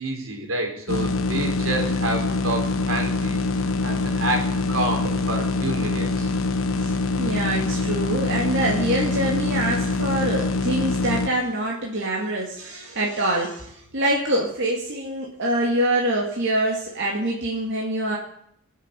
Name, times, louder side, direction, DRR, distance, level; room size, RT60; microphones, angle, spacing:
voice 1, 0.0-3.4 3.8-6.4, right 1 dB, 80° right, 2 dB, 4.0 m, -28 dB
sound 1, 0.9-11.3, left 3 dB, 70° left, 1.3 m, -24 dB
voice 2, 6.8-18.2, right 1 dB, 60° right, -2 dB, 2.6 m, -25 dB
21.5 x 7.5 x 8.4 m, 0.71 s
head